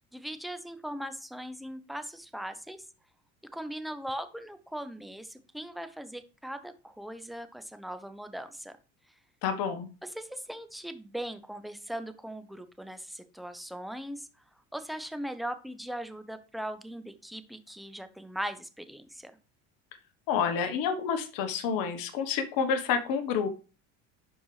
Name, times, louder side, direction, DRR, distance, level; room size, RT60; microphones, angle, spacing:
voice 1, 0.1-2.9 3.5-8.8 10.0-14.3 14.7-19.3, equal, ahead, 9 dB, 0.9 m, -39 dB
voice 2, 9.4-9.9 20.3-23.5, left 6 dB, 65° left, 7 dB, 1.3 m, -29 dB
11.5 x 4.6 x 3.2 m, 0.34 s
supercardioid pair, 85°, 37 cm